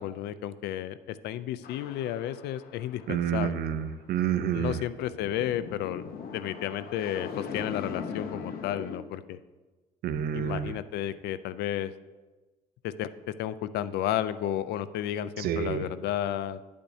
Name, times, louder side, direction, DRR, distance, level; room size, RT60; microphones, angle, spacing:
voice 1, 0.0-3.6 4.5-6.0 6.3-9.4 10.3-11.9 12.8-13.1 13.4-16.6, left 11 dB, 80° left, 15 dB, 0.4 m, -32 dB
sound 1, 1.6-4.1 4.7-9.0, left 6 dB, 60° left, 0.9 m, -40 dB
voice 2, 3.1-4.8 10.0-10.8 15.4-15.9, right 9 dB, 65° right, 11 dB, 0.6 m, -29 dB
10.0 x 8.6 x 2.7 m, 1.2 s
cardioid pair, 110°, 17 cm